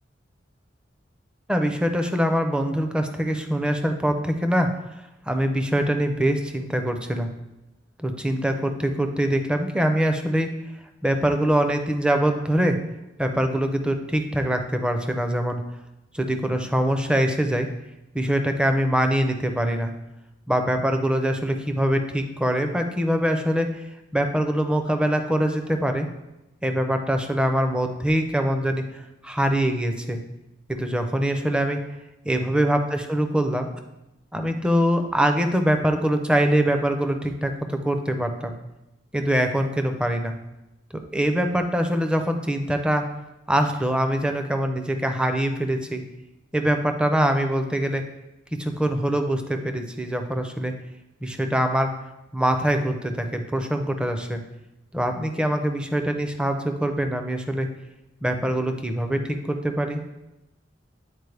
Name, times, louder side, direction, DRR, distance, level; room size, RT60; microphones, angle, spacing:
voice 1, 1.5-4.7 5.3-7.3 8.0-10.5 11.0-12.8 13.2-15.6 16.1-17.7 18.1-19.9 20.5-23.8 24.1-26.1 26.6-30.2 30.7-31.8 32.2-33.7 34.3-38.5 39.1-40.3 41.1-43.0 43.5-46.0 46.5-48.0 48.6-50.7 51.2-51.9 52.3-54.4 54.9-57.7 58.2-60.0, right 1 dB, 5° right, 5 dB, 0.4 m, -23 dB
8.1 x 4.1 x 3.3 m, 0.96 s
head